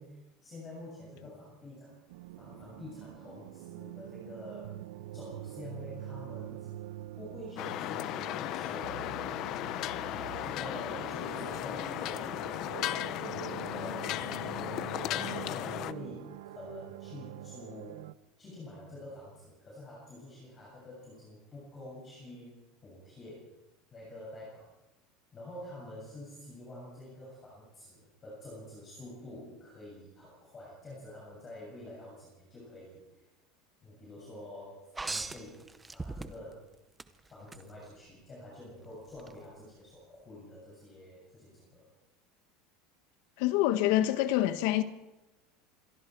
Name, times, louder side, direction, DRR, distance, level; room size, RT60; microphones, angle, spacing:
voice 1, 0.0-2.0 2.4-4.8 5.1-6.7 7.2-9.2 10.1-18.0 18.4-23.5 23.9-24.7 25.3-33.3 33.8-36.7 37.3-41.9, left 1 dB, 20° left, 7.3 m, -47 dB
sound 1, 2.1-18.1, right 14 dB, 85° right, 0.7 m, -45 dB
sound 2, 7.6-15.9, left 13 dB, 35° left, 0.7 m, -36 dB
sound 3, 35.0-36.6 37.0-37.6 39.2-39.3, right 3 dB, 10° right, 0.7 m, -38 dB
voice 2, 43.4-44.8, left 14 dB, 55° left, 1.5 m, -26 dB
26.5 x 22.5 x 4.8 m
cardioid pair, 180°, 0 cm